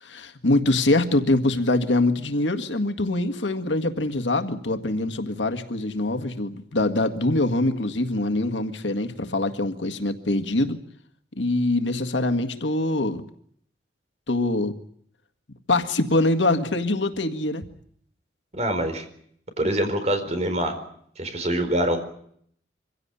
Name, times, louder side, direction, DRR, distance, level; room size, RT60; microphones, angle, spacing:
voice 1, 0.0-10.8 11.4-13.2 14.3-14.8 15.7-17.6, left 2 dB, 90° left, 7 dB, 1.9 m, -24 dB
voice 2, 18.5-19.0 19.6-20.8 21.2-22.0, right 1 dB, 40° right, 7 dB, 4.5 m, -24 dB
25.0 x 16.5 x 9.8 m, 0.67 s
head